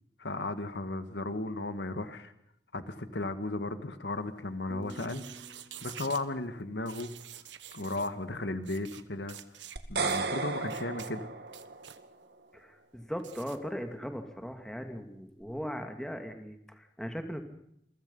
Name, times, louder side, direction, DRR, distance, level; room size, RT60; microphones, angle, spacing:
voice 1, 0.2-2.3 2.7-5.2 5.8-7.1 7.7-9.4 9.9-11.3, left 2 dB, 70° left, 10 dB, 1.9 m, -35 dB
sound 1, 4.7-7.7, right 1 dB, 25° right, 1.7 m, -51 dB
sound 2, 4.8-6.2 6.9-8.1 8.6-9.0 9.3-9.8 10.1-10.3 10.7-11.1 11.5-12.0 13.2-13.6, right 11 dB, 85° right, 1.5 m, -47 dB
sound 3, 9.8-12.1, right 4 dB, 65° right, 2.5 m, -34 dB
voice 2, 12.5-17.4, equal, 5° left, 5 dB, 2.5 m, -39 dB
28.5 x 23.0 x 5.6 m, 0.73 s
head